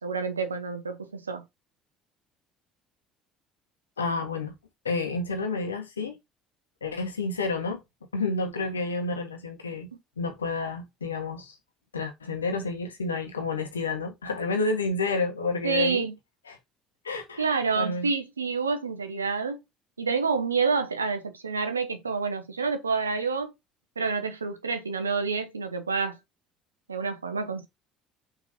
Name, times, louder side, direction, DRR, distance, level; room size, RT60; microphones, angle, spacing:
voice 1, 0.0-1.4 15.6-16.1 17.4-19.6 20.0-23.5 24.0-26.2 26.9-27.7, right 5 dB, 85° right, 1.0 m, -28 dB
voice 2, 4.0-4.5 4.8-6.2 6.8-7.8 8.1-9.9 10.2-11.5 11.9-16.0 16.5-16.6 17.0-17.4 17.7-18.1, left 3 dB, 80° left, 1.5 m, -30 dB
5.9 x 4.2 x 5.1 m
figure-of-eight pair, 60°, 0 cm